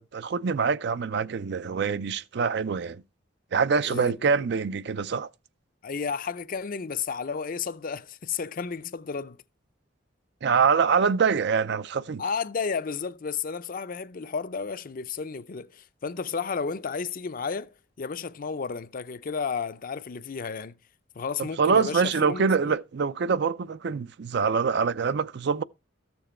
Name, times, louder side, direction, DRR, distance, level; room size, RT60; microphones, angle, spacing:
voice 1, 0.0-3.0 3.5-5.3 10.4-12.2 21.4-25.6, right 5 dB, 65° right, 0.5 m, -25 dB
voice 2, 3.8-4.4 5.8-9.4 12.2-20.8 21.2-22.8, left 5 dB, 50° left, 0.5 m, -32 dB
13.5 x 7.1 x 4.3 m
head